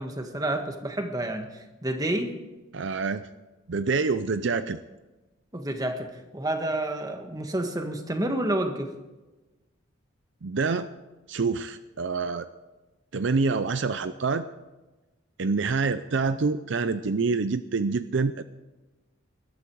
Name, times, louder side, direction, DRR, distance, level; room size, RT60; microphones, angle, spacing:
voice 1, 0.0-2.3 5.5-8.9, right 1 dB, 20° right, 5 dB, 1.5 m, -29 dB
voice 2, 2.7-3.3 3.7-4.8 10.4-10.9 11.3-12.5 13.1-14.4 15.4-18.4, right 4 dB, 60° right, 12 dB, 0.5 m, -26 dB
20.5 x 12.5 x 4.7 m, 1.1 s
head